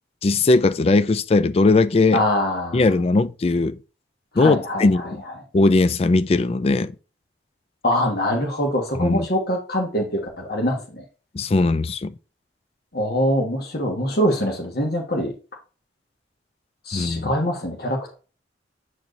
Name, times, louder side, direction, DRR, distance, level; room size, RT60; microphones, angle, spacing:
voice 1, 0.2-2.2 2.7-3.8 4.4-5.2 5.5-6.9 9.0-9.2 11.3-12.1 16.9-17.3, left 3 dB, 35° left, 0.3 m, -19 dB
voice 2, 2.1-2.9 4.3-5.1 7.8-11.0 12.9-15.3 16.9-18.1, equal, 55° left, 1.4 m, -23 dB
8.3 x 4.5 x 2.6 m
head